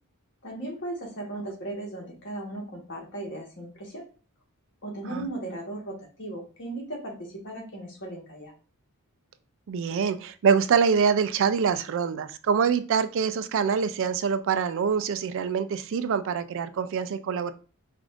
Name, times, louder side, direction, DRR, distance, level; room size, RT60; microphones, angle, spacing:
voice 1, 0.4-4.1 4.8-8.5, right 1 dB, 55° left, 1.3 m, -37 dB
voice 2, 9.7-17.5, right 6 dB, 60° right, 0.3 m, -25 dB
4.9 x 2.5 x 2.4 m
head